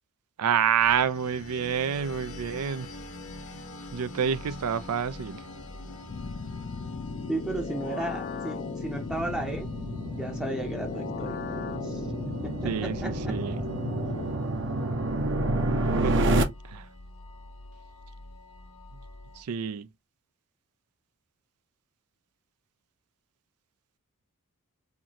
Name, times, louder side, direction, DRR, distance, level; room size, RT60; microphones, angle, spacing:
voice 1, 0.4-2.9 3.9-5.4 12.6-13.6 16.0-16.9 19.4-19.9, right 7 dB, 85° right, 0.4 m, -28 dB
sound 1, 0.8-19.4, left 2 dB, 65° left, 1.0 m, -45 dB
sound 2, 5.4-16.4, right 2 dB, 55° right, 0.7 m, -31 dB
sound 3, 6.1-14.3, left 5 dB, 40° left, 0.4 m, -36 dB
voice 2, 7.3-9.7 10.1-11.4 11.8-13.4, right 1 dB, 5° right, 0.6 m, -34 dB
4.4 x 2.5 x 2.8 m
head